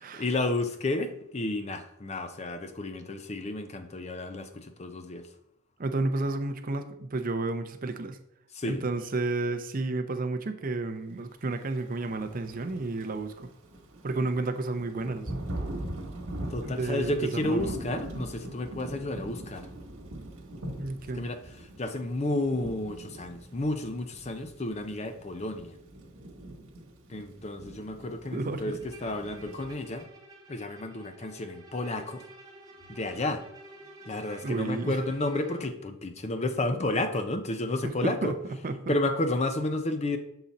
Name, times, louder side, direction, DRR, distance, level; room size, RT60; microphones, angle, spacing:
voice 1, 0.1-5.3 8.5-8.8 16.5-19.7 21.1-25.8 27.1-30.1 30.5-32.2 32.9-33.4 34.1-38.3 38.9-40.2, left 2 dB, 30° left, 8 dB, 0.5 m, -31 dB
voice 2, 5.8-8.2 8.6-13.5 14.0-15.3 16.6-17.8 20.8-21.3 28.3-28.8 34.4-35.0 37.8-38.9, right 2 dB, 40° right, 7 dB, 0.5 m, -31 dB
Thunder / Rain, 11.9-30.0, right 1 dB, 85° right, 1.3 m, -42 dB
Bowed string instrument, 28.8-35.7, right 2 dB, 15° right, 1.0 m, -51 dB
7.2 x 3.9 x 4.1 m, 0.79 s
head